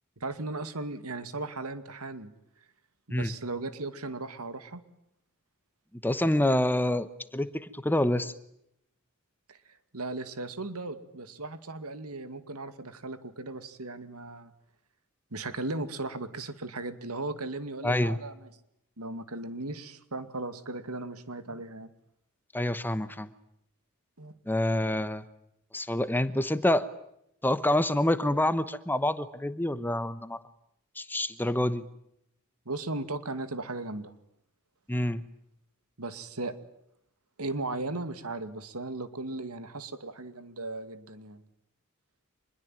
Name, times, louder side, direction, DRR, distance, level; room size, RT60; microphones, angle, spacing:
voice 1, 0.2-2.3 3.1-4.8 9.5-9.6 9.9-14.5 15.3-18.5 19.0-21.9 24.2-24.3 32.7-34.1 36.0-36.5 37.4-41.4, right 2 dB, 85° right, 11 dB, 2.3 m, -37 dB
voice 2, 6.0-8.3 17.8-18.2 22.5-23.3 24.5-25.2 25.7-26.9 27.4-30.4 31.0-31.8 34.9-35.2, left 1 dB, 10° left, 13 dB, 1.1 m, -27 dB
25.5 x 21.5 x 9.2 m, 0.77 s
head